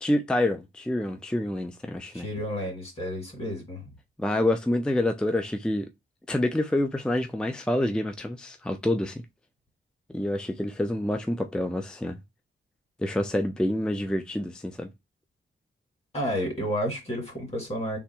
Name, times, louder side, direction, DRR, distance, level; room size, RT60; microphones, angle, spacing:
voice 1, 0.0-2.3 4.2-5.9 6.3-9.2 10.1-12.2 13.0-14.9, left 1 dB, 5° left, 0.4 m, -27 dB
voice 2, 2.1-3.8 16.1-18.0, equal, 30° left, 2.2 m, -31 dB
3.5 x 2.9 x 4.3 m
wide cardioid pair, 170°, 20 cm